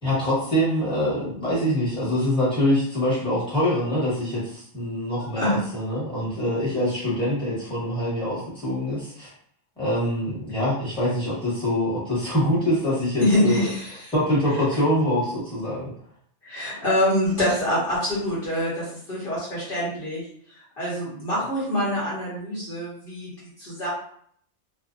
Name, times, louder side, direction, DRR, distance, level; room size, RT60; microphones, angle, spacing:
voice 1, 0.0-9.3 9.8-13.6 14.1-15.9, equal, 5° left, -9 dB, 1.1 m, -24 dB
voice 2, 13.2-14.1 16.4-20.3 20.5-23.9, left 1 dB, 50° left, -9 dB, 1.1 m, -25 dB
2.5 x 2.2 x 2.5 m, 0.63 s
omnidirectional pair, 1.3 m